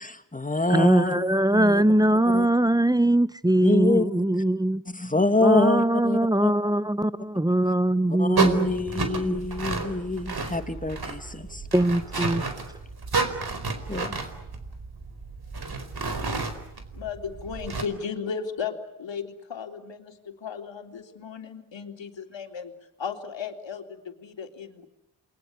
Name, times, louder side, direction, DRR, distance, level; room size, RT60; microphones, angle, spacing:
voice 1, 0.0-1.8 2.3-2.5 3.6-4.4 4.9-6.5 8.2-11.6 13.9-14.2, left 2 dB, 15° left, 2.5 m, -26 dB
voice 2, 0.7-4.8 5.4-9.4 10.3-10.4 11.7-12.5, right 1 dB, 10° right, 0.9 m, -22 dB
sound 1, 8.4-17.8, right 3 dB, 45° right, 4.6 m, -31 dB
voice 3, 16.9-22.7 23.0-24.9, left 6 dB, 60° left, 3.6 m, -35 dB
28.5 x 22.5 x 8.4 m
supercardioid pair, 45°, 50 cm